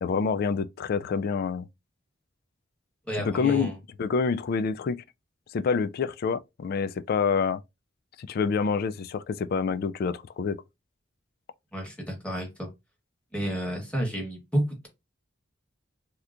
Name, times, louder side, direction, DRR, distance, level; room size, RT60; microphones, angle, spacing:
voice 1, 0.0-1.6 3.2-3.7 4.0-5.0 5.5-7.6 8.2-10.6, left 5 dB, 50° left, 0.3 m, -27 dB
voice 2, 3.1-3.8 11.7-12.7 13.3-14.9, equal, 5° left, 1.3 m, -30 dB
3.3 x 2.8 x 2.4 m
head